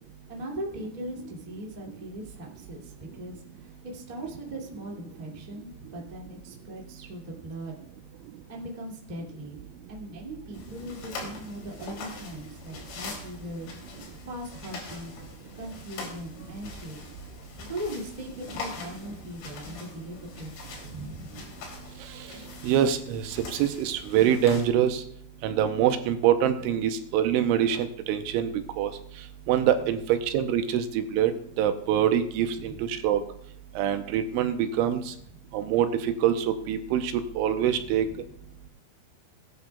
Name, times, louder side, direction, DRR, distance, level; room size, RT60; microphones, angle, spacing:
voice 1, 0.3-7.7 8.5-9.6 9.9-13.9 14.2-15.1 15.5-17.0 17.6-21.5 32.5-32.8 37.8-38.1, equal, 35° right, -2 dB, 0.6 m, -39 dB
sound 1, 10.5-24.7, left 3 dB, 85° left, 5.5 m, -42 dB
voice 2, 22.6-25.0 25.4-28.5 28.8-28.9 29.5-31.3 31.6-33.2 33.8-35.1 35.5-38.1, right 10 dB, 90° right, 8 dB, 3.1 m, -25 dB
19.0 x 10.5 x 2.4 m, 0.67 s
omnidirectional pair, 5.5 m